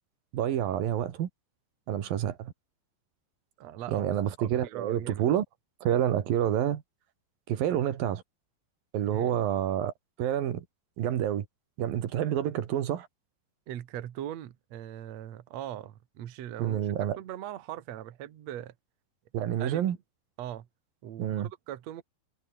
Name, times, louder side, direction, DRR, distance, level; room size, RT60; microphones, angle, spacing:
voice 1, 0.3-1.3 1.9-2.5 3.9-5.4 5.8-6.8 7.5-8.2 8.9-9.9 10.2-10.7 11.0-11.5 11.8-13.1 16.6-17.2 19.3-20.0 21.2-21.5, right 10 dB, 80° right, 3.6 m, -28 dB
voice 2, 3.6-4.1 4.4-5.3 9.1-9.3 13.7-18.7 19.6-20.0 20.4-20.7 21.0-22.0, right 12 dB, 60° right, 2.3 m, -40 dB
omnidirectional pair, 4.1 m